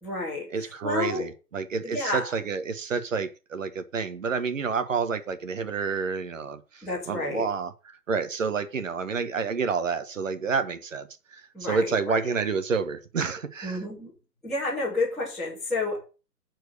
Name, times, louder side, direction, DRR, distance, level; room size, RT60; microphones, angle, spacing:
voice 1, 0.0-0.5 0.8-1.3 1.8-2.3 6.8-7.5 11.5-12.3 13.6-14.1 14.4-16.0, left 2 dB, ahead, 2.0 m, -30 dB
voice 2, 0.5-7.7 8.1-13.8, right 5 dB, 55° right, 1.4 m, -29 dB
10.0 x 4.7 x 6.7 m
hypercardioid pair, 165°, 47 cm